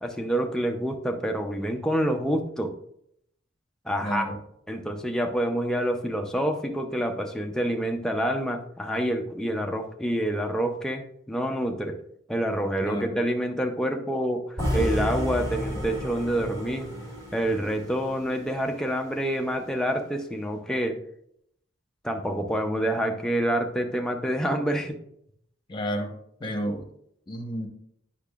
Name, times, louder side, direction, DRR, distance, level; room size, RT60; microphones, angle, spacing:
voice 1, 0.0-2.7 3.9-4.3 4.7-12.0 12.3-16.9 17.3-21.0 22.0-25.0, equal, 5° left, 3 dB, 0.6 m, -27 dB
voice 2, 4.0-4.4 12.8-13.2 25.7-26.1 26.4-26.9 27.3-27.7, equal, 25° left, 2 dB, 1.0 m, -31 dB
sound 1, 14.6-18.7, equal, 20° right, 2.9 m, -31 dB
8.5 x 5.8 x 2.4 m, 0.71 s
head